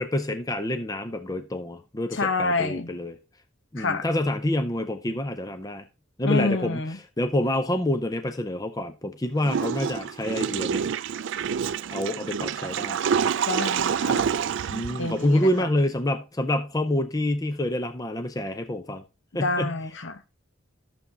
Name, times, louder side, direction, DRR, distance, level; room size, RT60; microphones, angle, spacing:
voice 1, 0.0-3.2 3.7-5.9 6.2-10.9 11.9-13.0 14.7-19.0 19.3-19.8, left 1 dB, 20° left, 0.6 m, -27 dB
voice 2, 2.1-2.9 3.8-4.1 6.2-7.0 13.4-14.3 15.0-15.7 19.4-20.2, left 3 dB, 65° left, 0.8 m, -28 dB
Water / Toilet flush, 9.4-15.6, right 7 dB, 65° right, 0.3 m, -27 dB
11.5 x 7.0 x 2.7 m
head